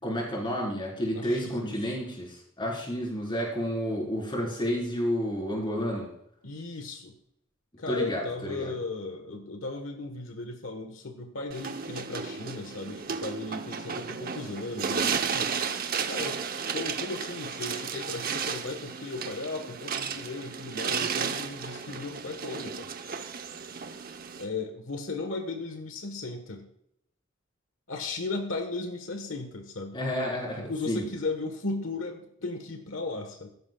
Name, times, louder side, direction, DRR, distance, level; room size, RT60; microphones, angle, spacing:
voice 1, 0.0-6.1 7.9-8.7 29.9-31.1, equal, 25° left, -3 dB, 4.3 m, -30 dB
voice 2, 1.1-2.0 6.4-7.1 7.8-15.6 16.0-16.4 16.7-22.9 24.4-26.7 27.9-30.0 30.6-33.5, left 3 dB, 85° left, 5 dB, 1.4 m, -36 dB
sound 1, 11.5-24.5, right 6 dB, 50° right, 0.9 m, -33 dB
15.5 x 13.0 x 2.4 m, 0.75 s
head